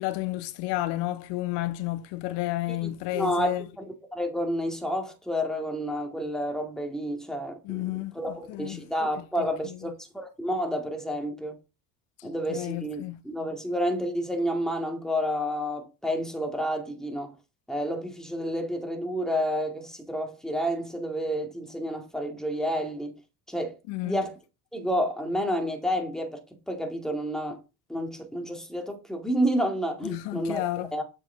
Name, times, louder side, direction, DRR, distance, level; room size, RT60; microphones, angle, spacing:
voice 1, 0.0-3.6 7.6-8.9 9.4-9.9 12.2-13.2 23.9-24.2 30.0-30.9, left 16 dB, 65° left, 0.7 m, -32 dB
voice 2, 2.7-7.9 8.1-11.6 12.2-17.3 17.7-23.1 23.5-23.8 24.0-24.4 24.7-27.6 27.9-30.6 30.9-31.0, equal, ahead, 2.1 m, -30 dB
7.4 x 4.9 x 3.9 m
supercardioid pair, 80°, 45 cm